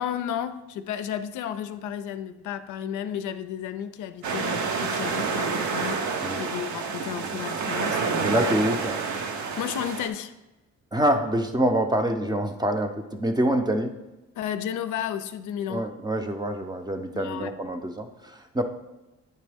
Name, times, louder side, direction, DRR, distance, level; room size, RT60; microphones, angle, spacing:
voice 1, 0.0-8.3 9.6-10.3 14.4-15.9 17.2-17.6, left 9 dB, 80° left, 0.5 m, -33 dB
sound 1, 4.2-10.1, right 5 dB, 70° right, 0.8 m, -28 dB
voice 2, 8.2-9.0 10.9-13.9 15.7-18.6, right 1 dB, 15° right, 0.6 m, -26 dB
9.3 x 3.1 x 3.4 m
cardioid pair, 90°, 30 cm